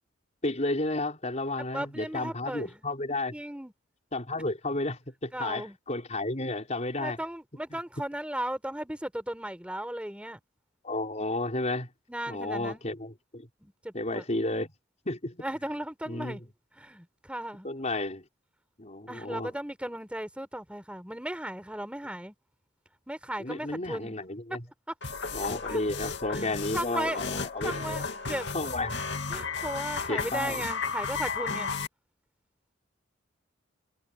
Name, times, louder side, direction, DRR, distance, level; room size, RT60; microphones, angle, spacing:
voice 1, 0.4-3.3 4.1-7.2 10.8-11.9 12.3-13.5 13.9-14.7 15.0-15.4 16.1-16.4 17.6-18.2 18.8-19.5 23.4-24.6 25.3-28.0 28.5-29.0 30.1-30.6, left 2 dB, 35° left, 4.9 m, -32 dB
voice 2, 1.7-2.9 3.3-3.7 5.3-5.8 7.0-10.4 12.1-12.8 13.6-14.2 15.4-16.5 16.8-17.7 19.1-22.3 23.1-24.1 25.7-25.8 26.3-27.2 27.6-28.5 29.3-31.7, right 1 dB, 5° right, 4.6 m, -36 dB
sound 1, 25.0-31.9, left 5 dB, 65° left, 2.6 m, -34 dB
head